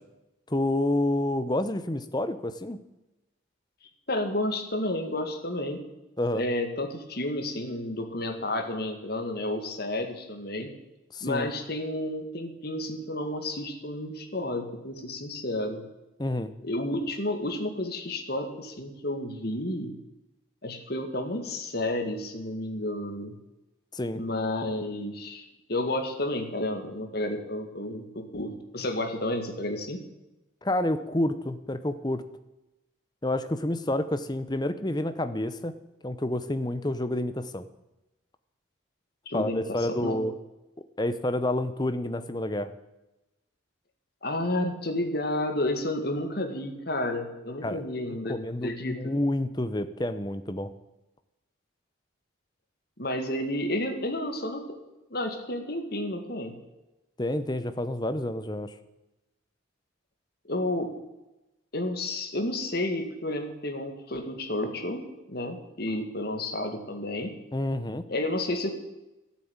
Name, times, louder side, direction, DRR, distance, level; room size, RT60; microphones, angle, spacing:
voice 1, 0.5-2.8 6.2-6.4 11.1-11.5 16.2-16.5 23.9-24.2 30.6-32.2 33.2-35.7 36.0-37.7 39.3-40.3 41.0-42.7 47.6-47.8 48.3-50.7 57.2-58.7 67.5-68.0, left 1 dB, 20° left, 11 dB, 0.8 m, -29 dB
voice 2, 4.1-5.8 6.3-10.7 11.2-15.8 16.6-20.0 20.6-23.3 24.1-30.0 39.3-40.2 44.2-49.1 53.0-54.8 55.1-56.6 60.5-60.9 61.7-67.3 68.1-68.8, left 1 dB, 50° left, 5 dB, 2.0 m, -31 dB
14.0 x 8.5 x 8.7 m, 0.99 s
head